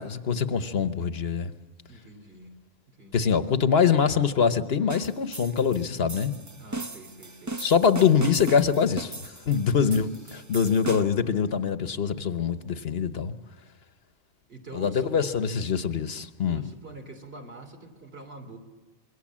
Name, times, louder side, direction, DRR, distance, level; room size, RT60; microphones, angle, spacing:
voice 1, 0.0-1.5 3.1-6.4 7.6-13.3 14.7-16.6, left 6 dB, 65° left, 11 dB, 1.2 m, -24 dB
voice 2, 1.9-2.6 2.9-3.3 6.6-7.6 9.5-10.6 14.5-15.8 16.4-18.6, right 2 dB, 60° right, 4 dB, 3.3 m, -46 dB
sound 1, 4.9-11.3, right 2 dB, 20° right, 0.6 m, -38 dB
26.5 x 22.5 x 7.4 m, 1.3 s
omnidirectional pair, 1.1 m